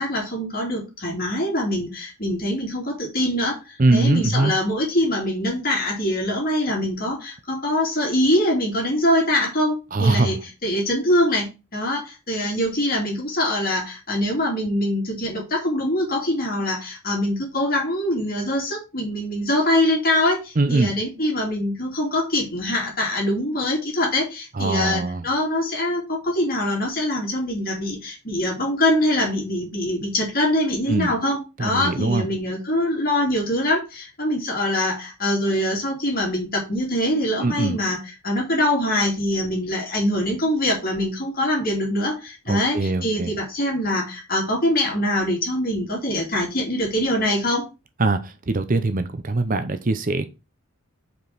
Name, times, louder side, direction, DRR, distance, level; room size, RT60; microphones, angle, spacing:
voice 1, 0.0-10.3 10.6-38.0 38.2-47.6, left 1 dB, 40° left, -1 dB, 2.7 m, -23 dB
voice 2, 3.8-4.5 9.9-10.4 20.6-20.9 24.5-25.3 30.9-31.1 31.6-32.2 37.4-37.8 42.5-43.3 48.0-50.3, right 2 dB, 35° right, 9 dB, 0.6 m, -22 dB
5.1 x 5.1 x 6.0 m, 0.28 s
head